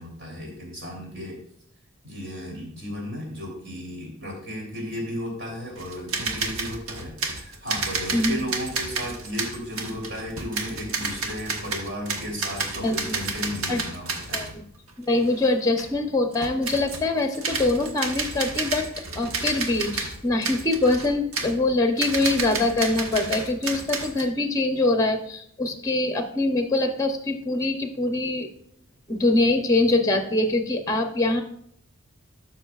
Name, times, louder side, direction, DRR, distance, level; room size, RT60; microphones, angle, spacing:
voice 1, 0.0-1.4 2.0-14.5, equal, 55° right, -1 dB, 3.3 m, -34 dB
sound 1, 5.8-14.6 14.9-15.0 15.2-15.5 15.8-15.9 16.3-17.1 17.3-24.2, right 4 dB, 85° right, 1.1 m, -31 dB
voice 2, 8.1-8.4 12.8-13.2 13.7-13.8 14.3-14.6 15.0-28.5 29.1-31.4, left 2 dB, 15° left, 5 dB, 0.7 m, -24 dB
12.5 x 5.8 x 2.4 m, 0.67 s
head